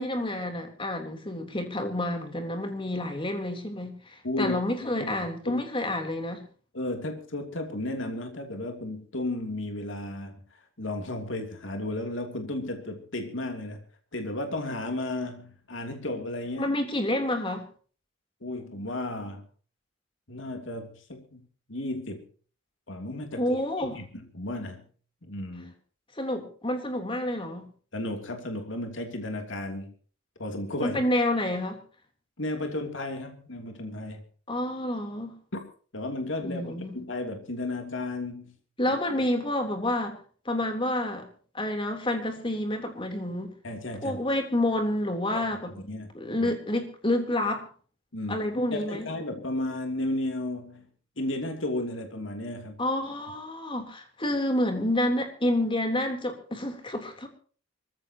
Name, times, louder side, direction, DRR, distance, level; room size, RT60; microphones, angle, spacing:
voice 1, 0.0-6.5 16.6-17.7 23.4-24.0 26.2-27.7 30.8-31.8 34.5-35.3 36.4-37.0 38.8-40.2 40.5-41.3 41.5-43.5 44.0-45.8 46.1-47.6 48.3-49.1 52.8-57.3, left 1 dB, 25° left, 3.5 m, -29 dB
voice 2, 4.2-4.6 5.4-5.6 6.7-10.4 10.8-13.8 14.1-16.7 18.4-19.4 20.3-21.4 21.7-22.2 22.9-24.0 24.3-24.8 25.2-25.7 27.9-29.9 30.4-31.0 32.4-34.2 35.5-35.6 35.9-38.5 43.6-44.2 45.3-45.4 45.9-46.1 46.4-46.5 48.1-50.9 51.2-52.8, left 1 dB, 70° left, 3.0 m, -33 dB
25.0 x 15.5 x 3.0 m
head